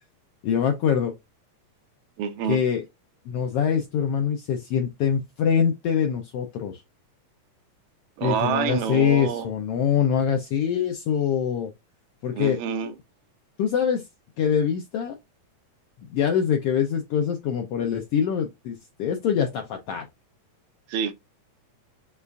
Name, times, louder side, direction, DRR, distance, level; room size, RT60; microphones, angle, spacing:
voice 1, 0.4-1.1 2.5-2.8 3.3-6.8 8.2-11.7 12.2-12.6 13.6-14.0 14.4-15.2 16.1-20.0, left 8 dB, 80° left, 1.4 m, -24 dB
voice 2, 2.2-2.6 8.2-9.5 12.3-12.9 20.9-21.1, right 8 dB, 80° right, 2.0 m, -27 dB
6.7 x 2.4 x 2.3 m
omnidirectional pair, 3.3 m